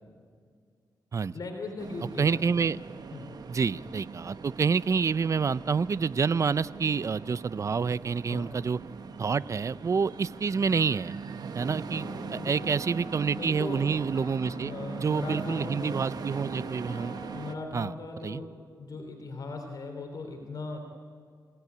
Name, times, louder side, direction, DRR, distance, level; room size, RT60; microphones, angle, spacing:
voice 1, 1.3-2.4 3.1-3.4 8.3-8.5 12.3-12.7 13.3-13.9 14.6-16.0 17.3-18.5 18.8-20.8, left 3 dB, 55° left, 3 dB, 3.3 m, -38 dB
sound 1, 1.8-17.5, right 5 dB, 60° right, 1.2 m, -41 dB
voice 2, 2.2-2.8 3.5-8.8 9.2-11.1 11.5-12.1 12.3-14.7 15.0-17.1 17.7-17.9 18.2-18.4, right 5 dB, 45° right, 17 dB, 0.6 m, -28 dB
sound 2, 11.6-17.7, left 2 dB, 85° left, 3.2 m, -46 dB
27.0 x 17.5 x 9.5 m, 2.1 s
cardioid pair, 95°, 8 cm